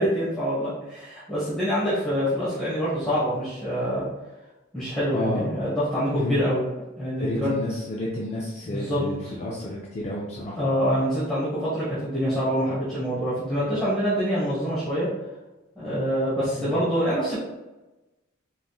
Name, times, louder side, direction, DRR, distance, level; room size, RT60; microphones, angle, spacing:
voice 1, 0.0-4.1 4.7-6.7 7.0-7.5 8.6-9.4 10.6-15.1 15.8-17.4, equal, ahead, -12 dB, 1.1 m, -25 dB
voice 2, 5.1-5.5 6.2-6.3 7.2-10.6 16.6-16.7, left 1 dB, 35° left, -3 dB, 0.4 m, -30 dB
4.0 x 3.5 x 2.3 m, 1.1 s
head